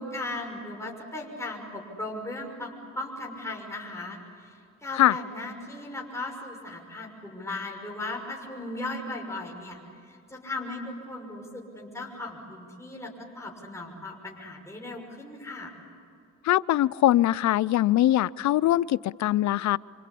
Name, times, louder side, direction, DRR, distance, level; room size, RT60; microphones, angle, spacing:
voice 1, 0.0-9.8 10.1-15.7, left 2 dB, 10° left, -1 dB, 6.1 m, -37 dB
voice 2, 16.4-19.8, left 14 dB, 65° left, 19 dB, 0.6 m, -22 dB
27.0 x 26.0 x 8.5 m, 2.5 s
cardioid pair, 90°, 30 cm